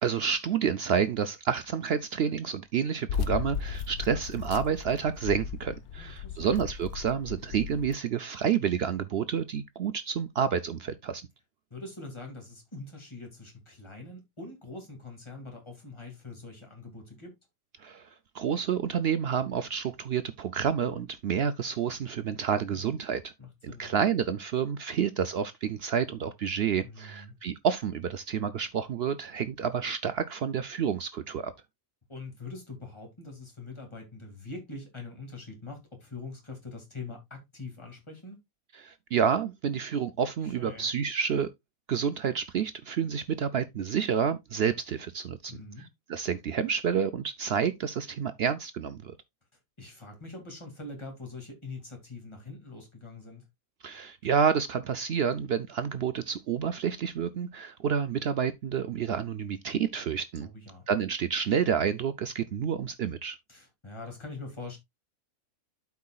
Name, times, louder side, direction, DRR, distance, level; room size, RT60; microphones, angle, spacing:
voice 1, 0.0-11.3 17.8-18.1 18.3-23.3 23.6-31.5 38.7-41.5 41.9-49.1 53.8-60.5 60.9-63.4, right 7 dB, 70° right, 0.6 m, -29 dB
sound 1, 3.1-7.9, left 7 dB, 85° left, 1.2 m, -36 dB
voice 2, 6.0-6.5 11.7-17.3 22.7-22.8 23.4-23.9 26.8-27.3 32.1-38.4 40.4-40.9 45.5-45.9 49.8-53.4 60.4-60.9 63.5-64.8, left 3 dB, 20° left, 2.3 m, -43 dB
12.0 x 4.7 x 2.3 m
omnidirectional pair, 1.5 m